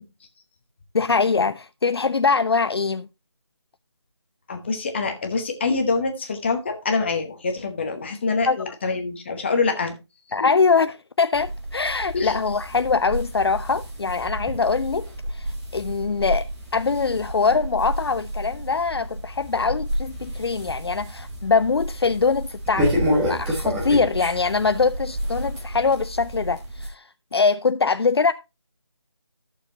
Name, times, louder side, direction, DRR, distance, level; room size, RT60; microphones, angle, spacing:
voice 1, 0.9-3.1 8.5-8.6 10.3-23.0 23.3-27.0 27.3-28.3, left 4 dB, 55° left, 0.4 m, -23 dB
voice 2, 4.5-9.9 10.4-10.5 12.1-12.4, left 4 dB, 25° left, 1.0 m, -25 dB
sound 1, 11.3-26.9, equal, 5° right, 0.9 m, -30 dB
14.0 x 6.8 x 2.9 m
figure-of-eight pair, 165°, 15 cm